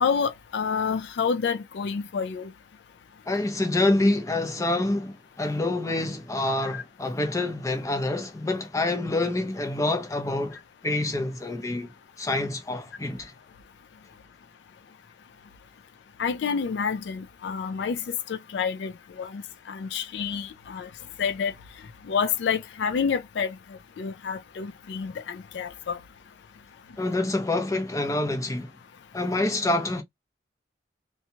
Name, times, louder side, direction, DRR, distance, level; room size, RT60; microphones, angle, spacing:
voice 1, 0.0-2.5 16.2-18.9 19.2-19.4 19.7-20.9 21.2-21.5 22.1-23.5 24.0-26.0, left 6 dB, 70° left, 0.4 m, -28 dB
voice 2, 3.3-10.6 10.8-11.9 12.2-13.3 27.0-28.7 29.1-30.0, left 2 dB, 15° left, 0.6 m, -26 dB
2.7 x 2.3 x 2.7 m
head